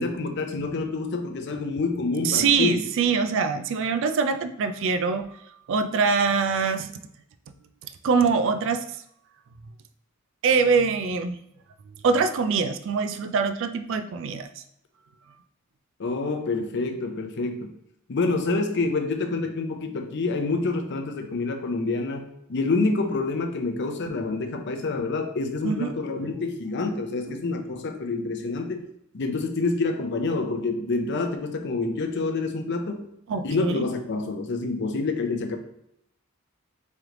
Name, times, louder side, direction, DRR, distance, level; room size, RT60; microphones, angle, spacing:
voice 1, 0.0-2.8 16.0-17.7 18.1-28.8 29.1-33.1 33.4-35.6, left 3 dB, 55° left, 5 dB, 0.6 m, -27 dB
voice 2, 2.2-5.3 5.7-6.9 8.0-8.8 10.4-11.4 12.0-14.6 25.6-26.4 27.3-27.4 33.3-33.9, right 5 dB, 65° right, 10 dB, 0.3 m, -24 dB
3.2 x 3.1 x 3.7 m, 0.77 s
head